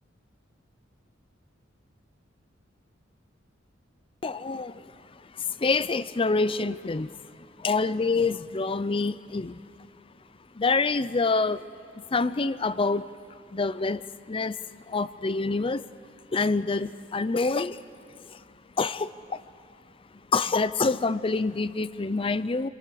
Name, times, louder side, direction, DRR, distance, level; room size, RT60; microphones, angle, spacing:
voice 1, 4.2-7.2 7.6-9.6 10.5-11.7 11.9-13.1 13.5-14.6 14.9-15.8 16.3-17.8 18.3-18.4 18.8-19.4 20.3-22.7, left 3 dB, 30° left, 16 dB, 0.5 m, -27 dB
29.5 x 23.0 x 6.9 m, 2.5 s
head